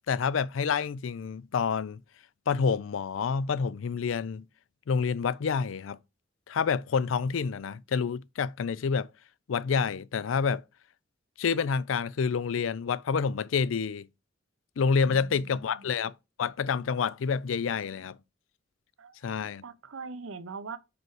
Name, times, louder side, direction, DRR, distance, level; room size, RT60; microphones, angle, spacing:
voice 1, 0.1-2.0 2.5-4.5 4.9-6.0 6.5-9.1 9.5-10.6 11.4-14.1 14.8-16.1 16.4-18.2 19.2-19.6, left 6 dB, 85° left, 0.4 m, -28 dB
voice 2, 15.0-15.9 19.0-19.2 19.6-20.8, right 4 dB, 90° right, 0.7 m, -42 dB
5.1 x 4.6 x 4.7 m
head